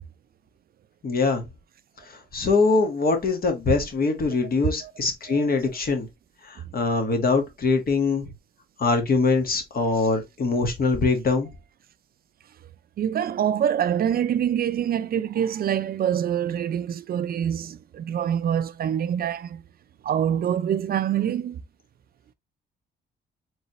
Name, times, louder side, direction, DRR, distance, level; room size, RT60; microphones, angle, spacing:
voice 1, 1.0-1.5 2.1-6.1 6.4-8.3 8.8-11.5, left 3 dB, 50° left, 1.4 m, -23 dB
voice 2, 13.0-19.6 20.0-21.6, right 9 dB, 50° right, 0.4 m, -25 dB
4.1 x 3.2 x 2.9 m
cardioid pair, 90°, 20 cm